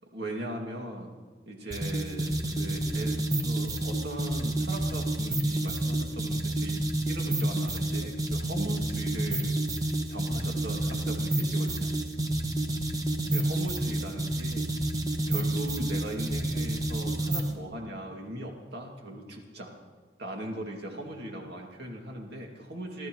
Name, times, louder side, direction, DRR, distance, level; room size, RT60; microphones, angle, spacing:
voice 1, 0.1-1.1 1.5-9.6 10.1-11.9 13.3-14.7 15.3-19.7 20.2-23.1, right 1 dB, 60° right, 0 dB, 2.3 m, -39 dB
sound 1, 1.7-17.6, right 1 dB, 20° right, 1.1 m, -29 dB
26.5 x 13.5 x 3.1 m, 1.4 s
head